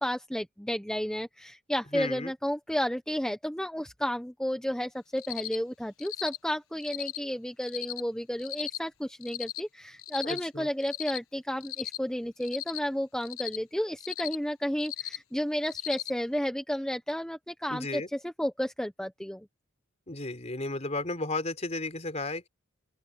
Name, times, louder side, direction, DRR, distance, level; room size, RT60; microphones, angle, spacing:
voice 1, 0.0-19.5, equal, 5° left, 0.9 m, -32 dB
voice 2, 1.9-2.3 10.2-10.7 17.7-18.1 20.1-22.5, left 2 dB, 35° left, 3.7 m, -34 dB
Cricket, 5.2-5.6 6.0-6.4 6.8-7.2 7.6-8.0 8.4-8.8 9.2-9.6 10.0-10.4 10.8-11.2 11.6-12.0 12.4-12.8 13.2-13.6 14.0-14.3 14.8-15.2 15.6-16.1, left 14 dB, 85° left, 1.3 m, -37 dB
open air
head